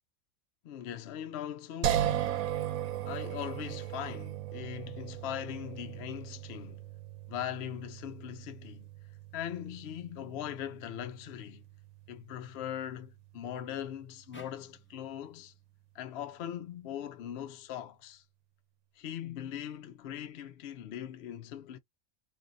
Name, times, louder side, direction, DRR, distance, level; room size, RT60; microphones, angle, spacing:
voice 1, 0.6-2.4 3.1-6.9 7.3-8.9 9.3-11.6 12.1-15.5 15.9-18.2 19.0-21.8, left 10 dB, 65° left, 0.6 m, -40 dB
sound 1, 1.8-14.9, right 11 dB, 80° right, 1.0 m, -38 dB
sound 2, 14.3-17.6, left 1 dB, 15° left, 0.4 m, -59 dB
2.7 x 2.3 x 3.7 m
omnidirectional pair, 1.5 m